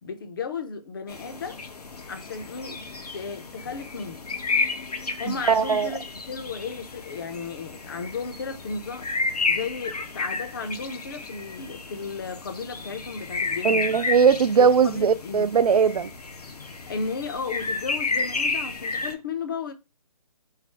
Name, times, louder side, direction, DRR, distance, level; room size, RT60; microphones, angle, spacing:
voice 1, 0.0-1.6 2.1-2.8 3.1-4.2 5.2-9.1 9.5-14.0 14.5-15.5 16.9-19.7, left 5 dB, 35° left, 0.5 m, -34 dB
sound 1, 1.1-19.1, left 4 dB, 85° left, 0.8 m, -32 dB
voice 2, 5.3-5.9 13.6-16.1, right 6 dB, 75° right, 0.5 m, -20 dB
3.2 x 2.5 x 4.4 m
figure-of-eight pair, 150°, 20 cm